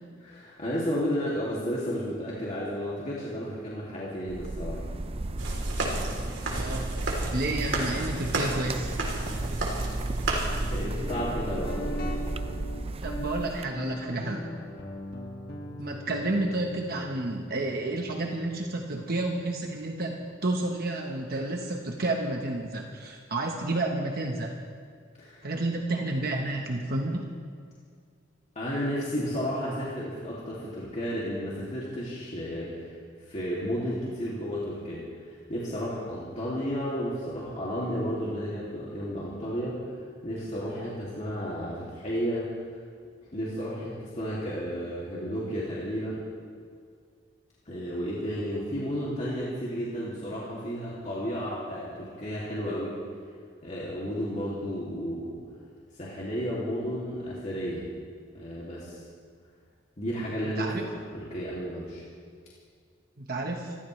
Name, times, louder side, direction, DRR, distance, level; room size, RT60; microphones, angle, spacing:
voice 1, 0.2-4.8 10.7-12.2 25.2-25.5 28.5-32.9 33.3-35.1 35.5-39.8 40.2-42.5 43.3-46.3 47.7-53.0 53.6-55.4 56.0-57.9 58.3-59.0 60.0-60.6 61.1-62.0, equal, 40° left, -7 dB, 2.6 m, -32 dB
sound 1, 4.3-13.6, right 2 dB, 30° right, 0.6 m, -33 dB
sound 2, 5.4-10.9, right 2 dB, 70° right, 3.5 m, -33 dB
voice 2, 6.5-6.9 7.3-8.9 13.0-14.5 15.8-20.1 20.4-24.5 25.4-27.3 60.4-60.8 63.2-63.7, right 2 dB, 50° right, 1 dB, 1.2 m, -30 dB
Guitar, 11.0-20.5, left 1 dB, 55° left, 2.0 m, -41 dB
26.5 x 14.5 x 3.3 m, 2.1 s
head